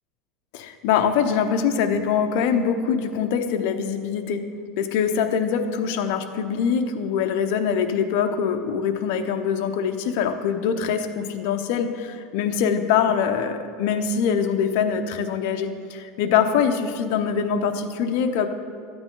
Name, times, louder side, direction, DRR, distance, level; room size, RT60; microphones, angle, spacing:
voice 1, 0.5-4.4 4.8-18.5, left 7 dB, 70° left, 6 dB, 0.8 m, -23 dB
13.0 x 8.8 x 3.8 m, 2.2 s
supercardioid pair, 140°, 0 cm